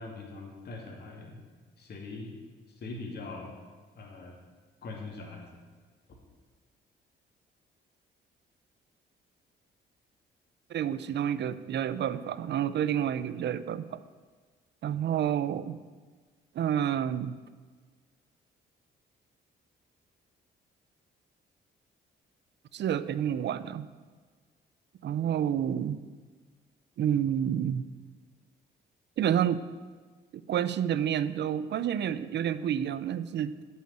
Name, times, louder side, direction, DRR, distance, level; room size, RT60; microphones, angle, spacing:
voice 1, 0.0-1.4 1.8-2.3 2.7-3.6 3.9-4.4 4.8-5.5, left 3 dB, 55° left, 0 dB, 2.7 m, -42 dB
voice 2, 10.7-14.0 14.8-15.8 16.5-17.4 22.7-23.9 25.0-26.0 27.0-27.9 29.2-29.6 30.3-33.6, right 9 dB, 60° right, 15 dB, 0.6 m, -29 dB
8.7 x 7.3 x 8.8 m, 1.5 s
cardioid pair, 90°, 20 cm